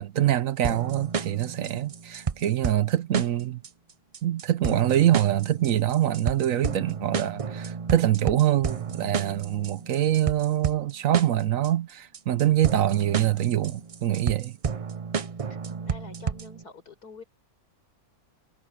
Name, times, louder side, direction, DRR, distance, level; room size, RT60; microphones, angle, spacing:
voice 1, 0.0-3.6 4.2-14.6, right 12 dB, 65° right, 1.0 m, -24 dB
sound 1, 0.6-16.6, right 6 dB, 45° right, 0.4 m, -32 dB
voice 2, 15.7-17.2, left 3 dB, 85° left, 4.9 m, -46 dB
omnidirectional pair, 1.6 m